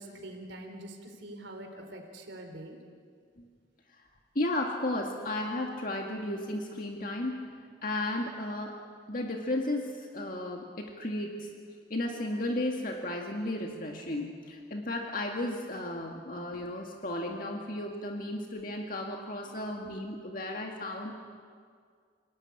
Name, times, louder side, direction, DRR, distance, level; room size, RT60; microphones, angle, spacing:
voice 1, 0.0-2.8, right 1 dB, 80° right, 2 dB, 3.9 m, -44 dB
voice 2, 4.4-7.4 7.8-8.8 9.1-11.5 11.9-21.3, left 1 dB, 45° left, 1 dB, 2.1 m, -34 dB
29.0 x 18.5 x 9.8 m, 2.1 s
head